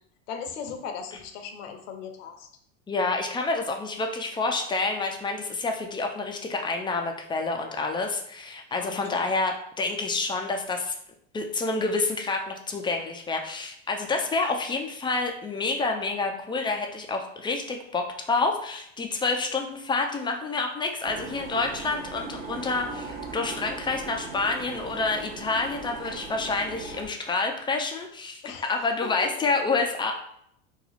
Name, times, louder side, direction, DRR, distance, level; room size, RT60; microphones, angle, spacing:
voice 1, 0.3-2.5 8.7-9.3 28.4-28.7 29.0-29.1, left 6 dB, 70° left, 5 dB, 0.7 m, -38 dB
voice 2, 2.9-10.9 11.3-30.1, left 3 dB, 15° left, 3 dB, 0.3 m, -28 dB
sound 1, 21.0-27.1, right 3 dB, 40° right, 1.0 m, -39 dB
2.9 x 2.3 x 4.0 m, 0.69 s
hypercardioid pair, 95°, 40 cm